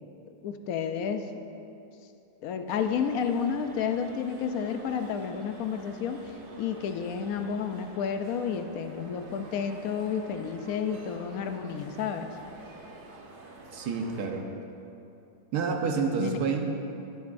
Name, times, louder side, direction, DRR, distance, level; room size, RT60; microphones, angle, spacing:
voice 1, 0.4-1.3 2.4-6.3 6.6-12.3 16.2-16.4, left 7 dB, 65° left, 7 dB, 0.9 m, -31 dB
sound 1, 2.7-14.3, right 2 dB, 40° right, 0.9 m, -48 dB
voice 2, 13.7-14.5 15.5-16.6, right 5 dB, 60° right, 2 dB, 1.4 m, -28 dB
18.0 x 9.5 x 2.6 m, 2.7 s
omnidirectional pair, 2.0 m